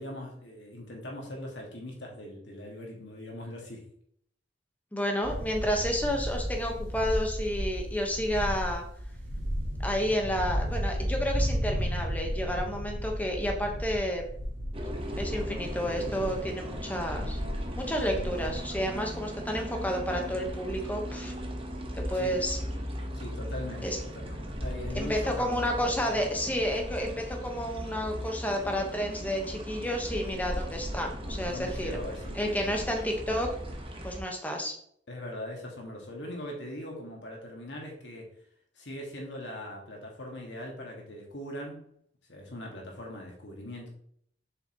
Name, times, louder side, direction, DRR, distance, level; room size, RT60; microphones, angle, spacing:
voice 1, 0.0-3.9 22.1-22.4 23.1-26.0 31.4-32.8 35.1-38.3 38.8-41.9 42.3-43.9, left 1 dB, 70° left, 0 dB, 1.9 m, -41 dB
voice 2, 4.9-8.8 9.8-14.2 15.2-17.4 17.7-21.3 21.9-22.6 23.8-24.0 24.9-32.0 32.3-33.5 34.0-34.7, equal, 10° left, 2 dB, 1.2 m, -31 dB
sound 1, 5.2-18.9, equal, 75° right, 2.2 m, -34 dB
sound 2, 14.7-34.2, equal, 30° right, 1.1 m, -37 dB
7.2 x 5.7 x 3.0 m, 0.65 s
head